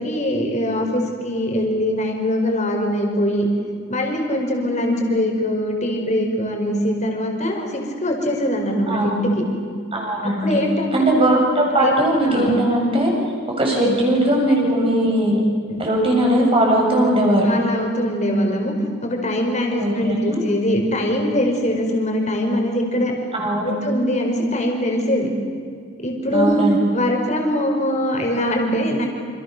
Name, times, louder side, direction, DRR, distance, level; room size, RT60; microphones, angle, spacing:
voice 1, 0.0-3.5 3.9-9.3 10.2-11.0 11.8-11.9 12.2-12.5 13.8-13.9 15.7-15.8 17.4-18.7 19.0-23.1 23.6-25.3 26.0-26.6 26.9-29.1, equal, 35° left, 2 dB, 5.1 m, -22 dB
voice 2, 8.9-9.3 9.9-10.6 10.9-13.1 13.6-15.4 15.8-17.5 19.8-20.4 23.3-23.7 26.3-26.8, right 1 dB, 25° right, -1 dB, 7.4 m, -19 dB
29.0 x 27.5 x 6.9 m, 2.2 s
head